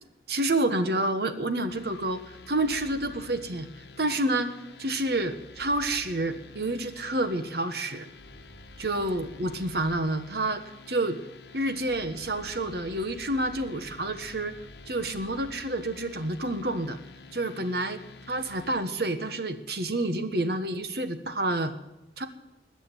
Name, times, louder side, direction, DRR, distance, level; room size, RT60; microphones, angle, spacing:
voice 1, 0.3-3.7 4.0-4.5 4.8-8.1 8.8-10.6 10.9-11.2 11.5-14.6 14.9-17.0 17.3-21.7 22.2-22.3, right 1 dB, 60° right, 9 dB, 1.4 m, -29 dB
sound 1, 1.7-18.8, left 4 dB, 70° left, 1.2 m, -50 dB
sound 2, 2.6-3.5 5.5-6.4 7.2-10.2 11.9-15.7, equal, 35° left, 5.4 m, -53 dB
20.5 x 7.1 x 9.8 m, 0.96 s
head